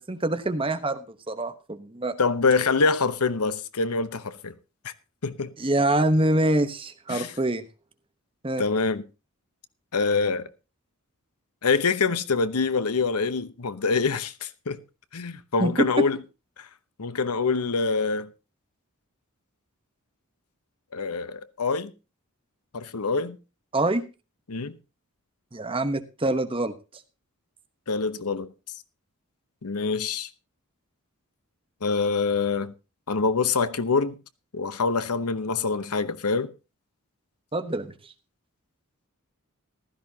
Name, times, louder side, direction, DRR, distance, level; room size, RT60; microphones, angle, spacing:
voice 1, 0.1-2.1 5.6-7.6 8.4-8.6 15.6-16.1 23.7-24.0 25.5-26.7 37.5-37.9, right 1 dB, 25° right, 1.0 m, -25 dB
voice 2, 2.2-4.5 4.8-4.9 5.2-5.5 7.1-7.3 8.6-9.0 9.9-10.5 11.6-14.8 15.1-16.2 16.6-16.7 17.0-18.3 20.9-21.9 22.7-23.4 24.5-24.7 27.9-28.5 29.6-30.3 31.8-32.7 33.1-34.2 34.5-36.5, left 4 dB, 85° left, 0.9 m, -25 dB
15.5 x 13.0 x 2.8 m
head